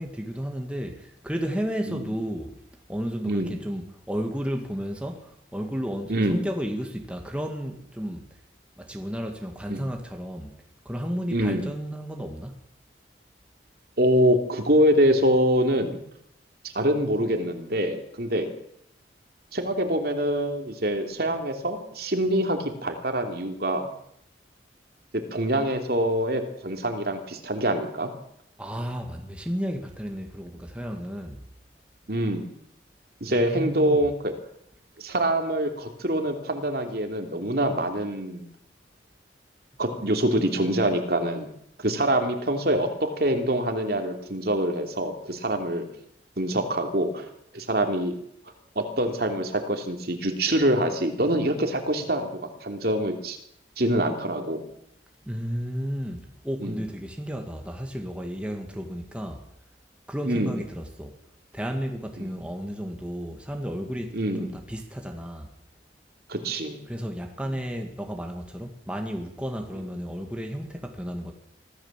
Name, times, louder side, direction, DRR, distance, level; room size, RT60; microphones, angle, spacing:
voice 1, 0.0-2.6 2.9-8.4 8.8-10.6 10.9-12.7 28.6-31.4 33.3-34.1 55.3-59.5 60.1-61.2 61.5-65.5 66.9-71.3, equal, 5° right, 2.0 m, -33 dB
voice 2, 3.2-3.6 6.1-6.5 9.7-9.8 11.3-11.7 14.0-16.0 16.6-18.5 19.5-23.9 25.1-28.1 32.1-32.5 33.2-34.3 35.0-38.5 39.8-41.5 41.8-45.9 46.4-47.3 47.5-48.1 48.7-53.4 53.8-54.6 56.6-56.8 60.3-60.5 62.2-62.3 64.1-64.5 66.3-66.8, right 1 dB, 55° right, 3.0 m, -25 dB
24.5 x 15.0 x 7.5 m
head